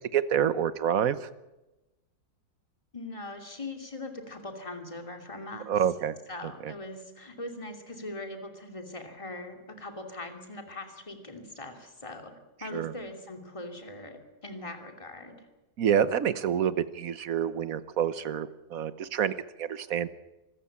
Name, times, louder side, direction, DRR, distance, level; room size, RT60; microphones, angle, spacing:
voice 1, 0.1-1.3 5.7-6.2 6.6-6.7 12.7-12.9 15.8-20.1, right 9 dB, 65° right, 14 dB, 1.3 m, -27 dB
voice 2, 2.9-5.9 6.3-12.3 12.6-15.5, left 2 dB, 20° left, 4 dB, 2.8 m, -41 dB
25.5 x 14.0 x 8.7 m, 1.0 s
omnidirectional pair, 1.7 m